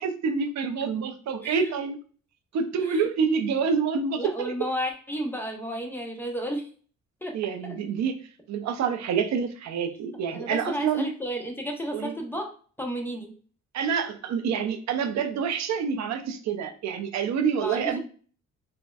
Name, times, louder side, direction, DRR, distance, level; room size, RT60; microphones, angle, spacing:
voice 1, 0.0-2.0 2.5-4.5 7.3-8.1 8.5-11.1 11.9-12.1 13.7-18.0, right 6 dB, 65° right, 7 dB, 0.6 m, -27 dB
voice 2, 1.4-1.7 2.8-3.1 4.2-6.7 7.2-7.3 7.6-7.7 10.3-12.5 12.8-13.3 17.6-18.0, equal, 5° left, 2 dB, 0.7 m, -32 dB
4.1 x 2.1 x 2.3 m, 0.42 s
cardioid pair, 90°, 30 cm